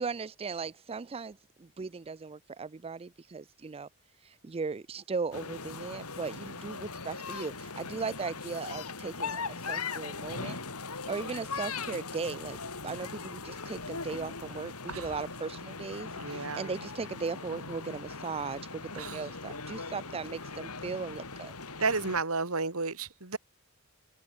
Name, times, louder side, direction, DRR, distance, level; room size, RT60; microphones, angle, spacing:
voice 1, 0.0-3.9 4.2-10.6 11.1-12.6 12.8-21.5, right 4 dB, 25° right, 0.4 m, -37 dB
sound 1, 5.3-22.2, left 4 dB, 75° left, 4.7 m, -40 dB
voice 2, 16.2-16.7 18.9-19.2 21.8-23.4, right 4 dB, 70° right, 3.2 m, -32 dB
open air
head